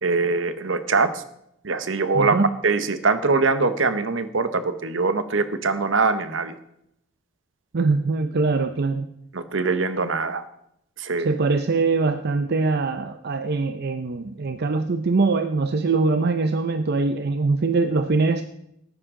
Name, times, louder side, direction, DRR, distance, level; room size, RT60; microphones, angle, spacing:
voice 1, 0.0-1.2 1.6-2.4 2.6-6.5 9.3-10.4 11.0-11.3, right 4 dB, 70° right, 11 dB, 1.0 m, -23 dB
voice 2, 2.1-2.5 7.7-9.1 11.2-18.4, right 3 dB, 55° right, 8 dB, 0.6 m, -22 dB
17.5 x 9.7 x 3.7 m, 0.77 s
head